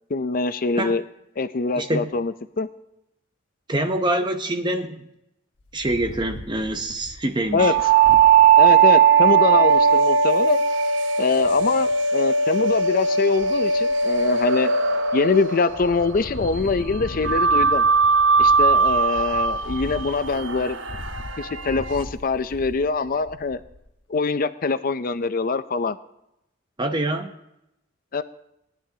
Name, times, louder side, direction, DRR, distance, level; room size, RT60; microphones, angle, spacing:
voice 1, 0.1-1.0 1.4-2.7 7.5-7.8 8.6-10.6 11.2-14.7 15.1-17.8 18.4-20.8 21.4-23.6 24.1-26.0 28.1-28.2, left 4 dB, 50° left, 11 dB, 0.5 m, -23 dB
voice 2, 1.8-2.1 3.7-5.1 5.7-7.8 26.8-27.3, right 1 dB, 25° right, 6 dB, 0.8 m, -25 dB
Wind, 5.6-8.7 9.2-9.3 9.5-9.9 11.4-12.0 12.5-13.0 13.3-14.5 14.9-15.4 15.7-23.9, left 1 dB, 90° left, 1.1 m, -39 dB
sound 1, 7.6-16.4 17.2-22.0, right 6 dB, 85° right, 0.9 m, -19 dB
19.5 x 10.5 x 2.8 m, 0.83 s
head